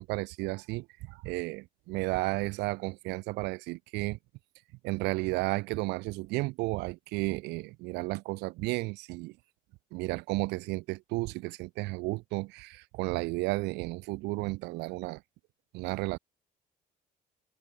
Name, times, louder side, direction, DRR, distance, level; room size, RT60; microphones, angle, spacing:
voice 1, 0.0-4.2 4.8-9.4 9.9-15.2 15.7-16.2, right 23 dB, 85° right, 0.4 m, -33 dB
cardioid pair, 110°, 17 cm